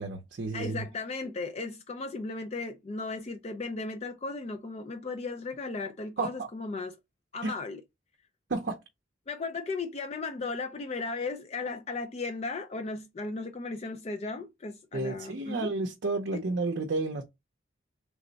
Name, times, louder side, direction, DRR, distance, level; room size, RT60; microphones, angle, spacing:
voice 1, 0.0-0.8 6.2-6.5 7.4-7.5 8.5-8.8 14.9-17.2, right 3 dB, 65° right, 0.6 m, -31 dB
voice 2, 0.5-7.0 7.3-7.8 9.3-15.7 16.3-16.4, left 3 dB, 30° left, 0.3 m, -36 dB
3.4 x 2.1 x 3.9 m
head